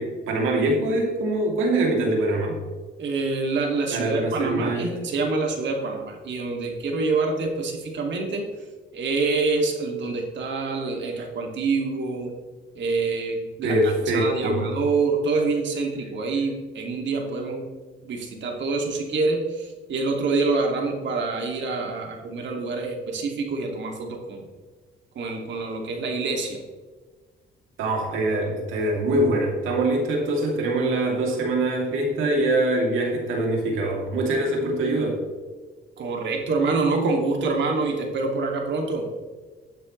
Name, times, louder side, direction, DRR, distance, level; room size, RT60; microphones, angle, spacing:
voice 1, 0.0-2.6 3.9-5.0 13.6-14.6 27.8-35.2, right 1 dB, 85° right, 0 dB, 3.0 m, -23 dB
voice 2, 3.0-8.4 8.9-12.3 12.8-13.8 14.1-17.7 18.0-24.4 25.2-26.6 36.0-39.1, right 3 dB, 65° right, 1 dB, 2.5 m, -26 dB
14.0 x 9.4 x 3.3 m, 1.4 s
cardioid pair, 90°, 20 cm